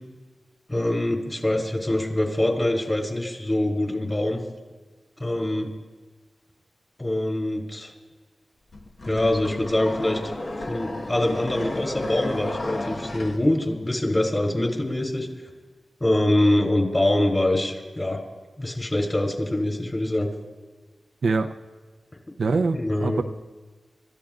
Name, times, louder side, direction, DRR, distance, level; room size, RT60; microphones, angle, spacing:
voice 1, 0.7-4.4 5.2-5.7 7.0-7.9 9.0-10.2 10.6-15.3 16.0-18.2 18.6-20.3 22.7-23.2, left 1 dB, 25° left, 0 dB, 3.5 m, -24 dB
sound 1, 8.7-13.4, left 2 dB, 55° left, 1.4 m, -33 dB
voice 2, 21.2-21.5 22.4-23.2, right 4 dB, 75° right, 6 dB, 0.6 m, -24 dB
27.5 x 14.0 x 2.5 m, 1.3 s
wide cardioid pair, 75°, 0 cm